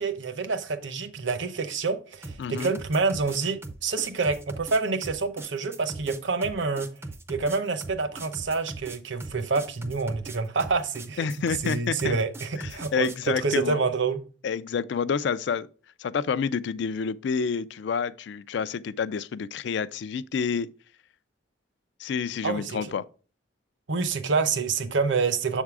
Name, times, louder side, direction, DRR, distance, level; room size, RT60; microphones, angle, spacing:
voice 1, 0.0-6.9 7.3-11.3 11.6-14.2 22.4-22.8 23.9-25.6, right 4 dB, 65° right, 0.7 m, -27 dB
sound 1, 2.2-13.3, right 2 dB, 10° right, 0.4 m, -40 dB
voice 2, 2.4-2.8 11.2-12.1 12.6-13.8 14.4-15.7 16.0-20.7 22.0-23.0, left 6 dB, 60° left, 0.3 m, -28 dB
7.3 x 3.6 x 4.7 m
head